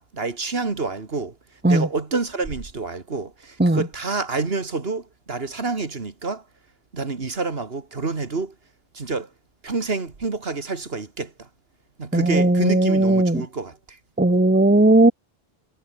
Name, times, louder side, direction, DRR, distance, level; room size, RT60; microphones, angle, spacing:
voice 1, 0.0-1.3 1.6-6.4 6.9-8.5 8.9-9.3 9.6-11.5 12.0-14.0, right 4 dB, 70° right, 2.3 m, -28 dB
voice 2, 12.1-13.5 14.2-15.1, right 2 dB, 10° right, 1.4 m, -17 dB
omnidirectional pair, 1.0 m